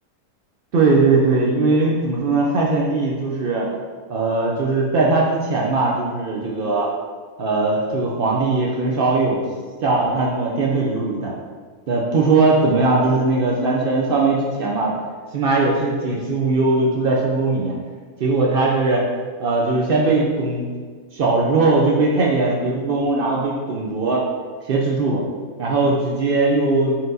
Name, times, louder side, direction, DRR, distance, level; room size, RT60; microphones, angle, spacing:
voice 1, 0.7-3.8 4.1-6.9 7.4-9.4 9.8-11.3 11.9-14.9 15.3-17.8 18.2-19.1 19.4-20.7 21.1-24.2 24.6-25.2 25.6-27.0, right 3 dB, 90° right, -3 dB, 0.4 m, -19 dB
4.2 x 3.7 x 2.6 m, 1.5 s
omnidirectional pair, 1.5 m